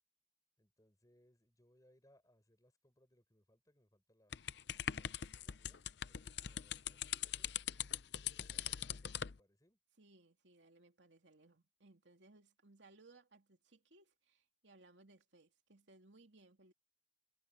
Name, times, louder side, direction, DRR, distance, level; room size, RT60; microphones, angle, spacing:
voice 1, 0.6-4.4 5.0-7.5 8.1-9.8, equal, 20° left, 5.6 m, -72 dB
sound 1, 4.3-9.4, left 10 dB, 65° left, 0.6 m, -41 dB
voice 2, 6.2-6.6 10.0-16.7, right 2 dB, 75° right, 2.9 m, -65 dB
head